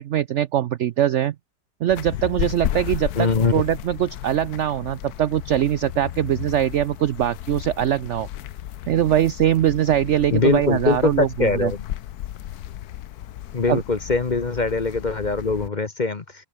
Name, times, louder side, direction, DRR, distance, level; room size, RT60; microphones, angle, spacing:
voice 1, 0.0-1.3 1.8-8.3 8.9-11.7 13.7-13.8, right 11 dB, 70° right, 0.7 m, -22 dB
sound 1, 1.9-15.7, left 12 dB, 70° left, 1.2 m, -34 dB
voice 2, 3.1-3.5 10.3-11.8 13.5-16.2, left 3 dB, 30° left, 1.0 m, -22 dB
omnidirectional pair, 1.8 m